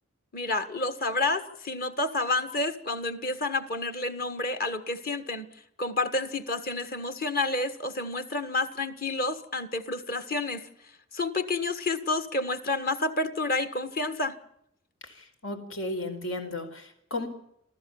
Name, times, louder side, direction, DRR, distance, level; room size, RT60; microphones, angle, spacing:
voice 1, 0.3-5.5 5.8-10.7 11.1-14.4, left 2 dB, 50° left, 9 dB, 1.7 m, -29 dB
voice 2, 15.0-17.3, left 2 dB, 85° left, 6 dB, 4.4 m, -35 dB
27.5 x 14.5 x 7.2 m, 0.75 s
head